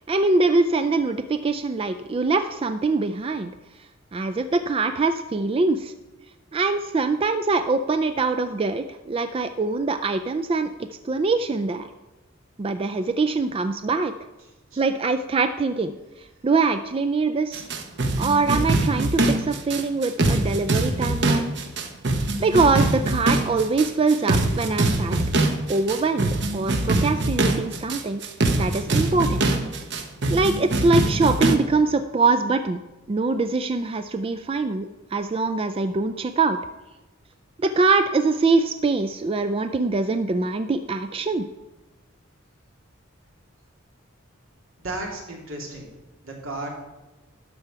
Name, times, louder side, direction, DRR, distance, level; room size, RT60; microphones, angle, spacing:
voice 1, 0.0-3.5 4.1-5.9 6.5-10.7 11.0-11.9 12.6-14.1 14.8-17.6 18.2-21.5 22.4-25.2 25.7-28.2 28.6-29.4 30.3-32.8 33.1-36.6 37.6-41.4, right 3 dB, 25° right, 10 dB, 0.3 m, -23 dB
sound 1, 17.5-31.6, right 2 dB, 55° right, 0.9 m, -23 dB
voice 2, 44.8-45.9 46.2-46.7, right 2 dB, 80° right, 0 dB, 2.6 m, -33 dB
12.0 x 4.6 x 6.8 m, 1.1 s
head